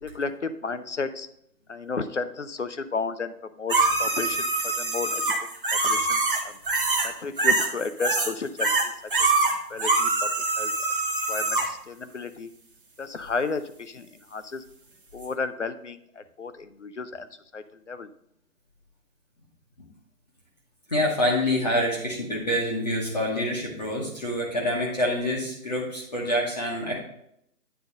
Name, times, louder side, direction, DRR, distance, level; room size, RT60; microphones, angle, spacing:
voice 1, 0.0-1.3 1.7-5.3 5.7-6.6 7.0-8.9 9.2-9.3 9.7-10.3 10.6-10.7 11.3-12.5 13.0-14.6 15.1-17.3 17.5-18.1, left 4 dB, 50° left, 11 dB, 0.5 m, -33 dB
sound 1, 3.7-7.1 7.4-8.3 8.6-11.7 15.2-15.3, right 3 dB, 35° right, 0.9 m, -24 dB
voice 2, 20.9-27.0, left 1 dB, 25° left, -4 dB, 1.0 m, -26 dB
9.1 x 3.9 x 5.2 m, 0.73 s
figure-of-eight pair, 165°, 47 cm